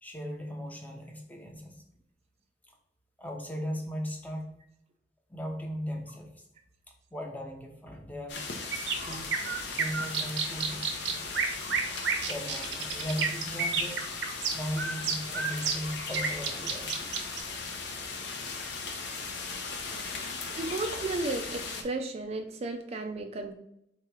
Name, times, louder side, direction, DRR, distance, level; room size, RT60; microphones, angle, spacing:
voice 1, 0.0-1.8 3.2-4.6 5.3-6.5 7.1-8.5 9.0-9.3 9.7-11.2 12.2-14.0 14.5-17.0, equal, 10° left, 2 dB, 0.7 m, -38 dB
sound 1, 8.3-21.8, left 4 dB, 75° left, 0.7 m, -38 dB
sound 2, 8.7-17.4, right 5 dB, 75° right, 0.7 m, -30 dB
voice 2, 20.6-23.5, right 2 dB, 35° right, 5 dB, 0.4 m, -34 dB
3.7 x 3.0 x 4.7 m, 0.76 s
head